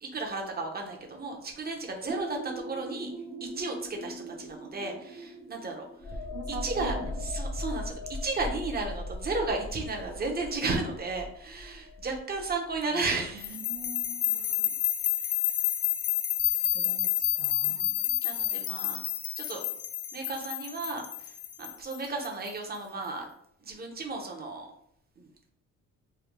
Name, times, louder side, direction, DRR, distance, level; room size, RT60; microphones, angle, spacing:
voice 1, 0.0-3.1 3.4-6.2 6.5-6.9 7.2-13.6 14.3-14.8 17.6-19.0 19.4-19.6 20.1-21.3 21.6-23.3 23.6-24.7 25.2-25.3, right 3 dB, 30° right, 2 dB, 0.8 m, -34 dB
sound 1, 2.1-7.7, right 3 dB, 15° right, 0.3 m, -42 dB
sound 2, 6.0-13.5 13.8-14.0, left 2 dB, 20° left, 0.7 m, -38 dB
voice 2, 6.3-7.2 13.6-14.2 16.7-17.1 17.4-17.9, right 5 dB, 90° right, 2 dB, 0.6 m, -41 dB
sound 3, 13.4-22.5, left 13 dB, 55° left, 0.4 m, -29 dB
3.3 x 2.2 x 3.5 m, 0.69 s
cardioid pair, 90°, 30 cm